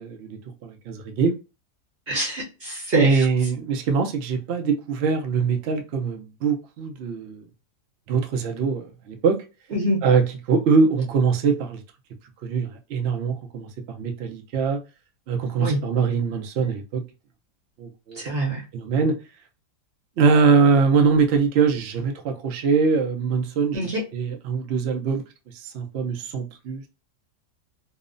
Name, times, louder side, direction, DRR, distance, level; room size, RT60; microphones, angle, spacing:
voice 1, 0.0-1.3 3.0-7.4 8.1-9.4 10.0-11.8 12.4-13.7 13.9-14.8 15.3-17.1 17.8-18.2 18.7-19.2 20.2-25.2 25.5-26.8, right 5 dB, 85° right, 0.5 m, -22 dB
voice 2, 2.1-3.2 9.7-10.1 15.6-15.8 18.1-18.6 23.7-24.0, right 1 dB, 50° right, 0.7 m, -25 dB
2.9 x 2.0 x 2.4 m
omnidirectional pair, 1.8 m